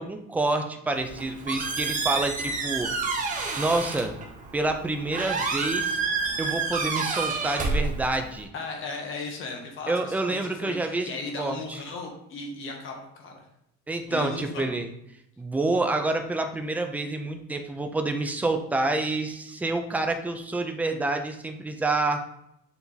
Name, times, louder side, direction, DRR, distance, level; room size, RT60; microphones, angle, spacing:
voice 1, 0.0-2.9 3.6-4.2 4.5-6.0 6.4-8.5 9.9-11.1 11.4-11.8 13.9-14.9 15.4-22.2, right 2 dB, 5° right, 5 dB, 0.4 m, -28 dB
Squeak, 0.9-8.4, right 4 dB, 25° right, 0.9 m, -29 dB
voice 2, 8.5-13.5 14.1-14.7, left 3 dB, 40° left, 2 dB, 1.3 m, -36 dB
7.1 x 3.4 x 4.0 m, 0.78 s
cardioid pair, 160°, 31 cm